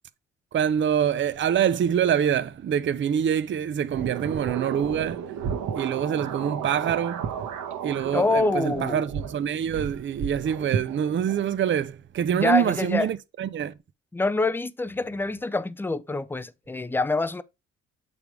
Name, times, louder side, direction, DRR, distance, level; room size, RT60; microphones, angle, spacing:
voice 1, 0.5-5.2 5.8-7.2 7.8-13.7, right 9 dB, 40° right, 0.6 m, -25 dB
sound 1, 3.9-11.5, right 7 dB, 80° right, 1.2 m, -33 dB
voice 2, 8.1-9.0 12.3-13.1 14.1-17.4, left 3 dB, 5° left, 0.4 m, -26 dB
7.0 x 3.4 x 4.6 m
cardioid pair, 90°, 30 cm